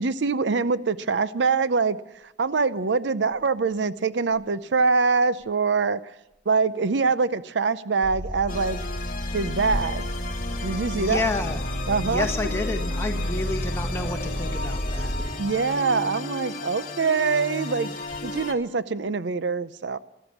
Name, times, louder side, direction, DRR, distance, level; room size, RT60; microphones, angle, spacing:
voice 1, 0.0-2.0 2.4-6.0 6.5-8.8 9.3-10.1 10.6-11.2 11.9-12.3 15.4-17.9 18.2-20.0, right 4 dB, 80° right, 15 dB, 0.6 m, -24 dB
sound 1, 8.0-15.3, equal, 5° right, 3.8 m, -31 dB
sound 2, 8.5-18.5, left 2 dB, 50° left, 1.3 m, -34 dB
voice 2, 10.9-11.6 12.0-15.1, left 2 dB, 15° left, 3 dB, 1.4 m, -30 dB
13.5 x 13.0 x 7.1 m, 0.86 s
head